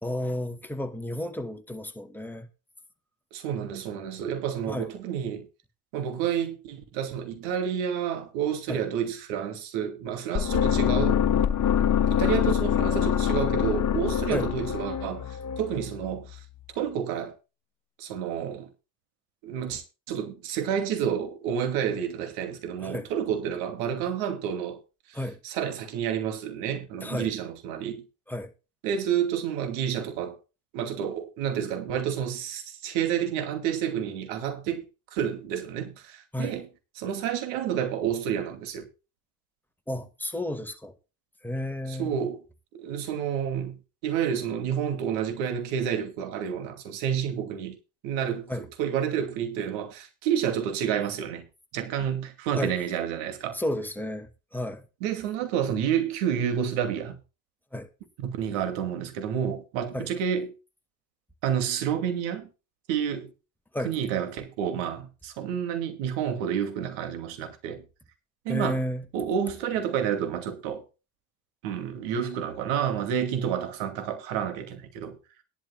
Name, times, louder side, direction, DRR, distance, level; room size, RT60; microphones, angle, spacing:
voice 1, 0.0-2.5 4.7-4.9 8.7-8.8 14.3-14.5 22.8-23.1 25.1-25.4 27.0-27.3 28.3-28.5 36.3-36.6 39.9-40.9 41.4-42.2 48.5-48.7 52.6-52.7 53.5-54.9 57.7-57.9 59.9-60.1 63.7-63.9 68.5-69.1, left 1 dB, 5° left, 1.9 m, -32 dB
voice 2, 3.3-5.5 5.9-11.2 11.8-16.4 16.7-17.3 18.0-18.7 19.4-19.8 20.1-24.8 25.1-25.2 25.4-28.1 28.8-30.4 30.7-34.9 35.1-36.7 37.0-38.9 41.9-42.4 42.7-47.8 48.0-48.5 48.8-51.4 51.7-53.6 55.0-57.2 58.2-60.5 61.4-62.5 62.9-63.3 63.8-67.8 68.4-68.8 69.1-70.8 71.6-75.2, right 8 dB, 75° right, 2.6 m, -29 dB
sound 1, 10.3-16.4, left 9 dB, 40° left, 1.2 m, -25 dB
18.5 x 11.5 x 2.3 m
hypercardioid pair, 65°, 47 cm